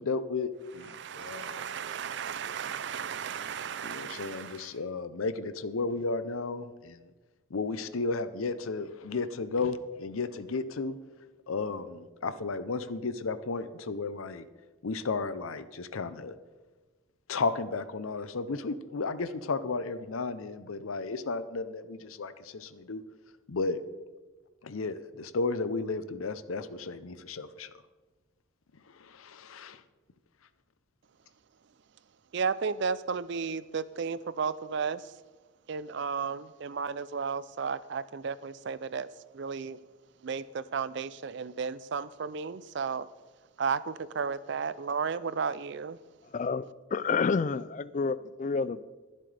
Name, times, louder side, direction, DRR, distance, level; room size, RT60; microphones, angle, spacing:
voice 1, 0.0-1.6 3.8-7.0 7.5-11.0 11.5-14.4 14.8-16.3 17.3-23.0 23.5-23.8 24.6-27.7 28.9-29.8, left 3 dB, 80° left, 0.6 m, -33 dB
voice 2, 0.9-4.6 32.3-35.0 35.7-39.1 39.3-39.8 40.2-43.1 43.6-46.0, right 5 dB, 55° right, 0.4 m, -33 dB
voice 3, 46.3-48.8, left 5 dB, 35° left, 0.3 m, -29 dB
22.5 x 7.6 x 3.4 m
head